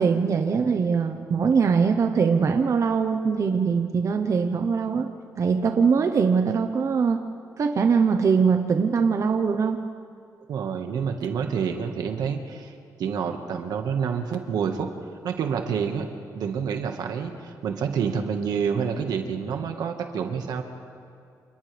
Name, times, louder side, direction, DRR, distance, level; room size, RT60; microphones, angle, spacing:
voice 1, 0.0-5.1 5.4-7.2 7.6-9.8, right 5 dB, 50° right, 5 dB, 1.1 m, -22 dB
voice 2, 10.5-14.9 15.2-16.1 16.3-20.6, right 6 dB, 85° right, 4 dB, 1.7 m, -28 dB
29.0 x 28.0 x 3.5 m, 2.4 s
cardioid pair, 100°, 7 cm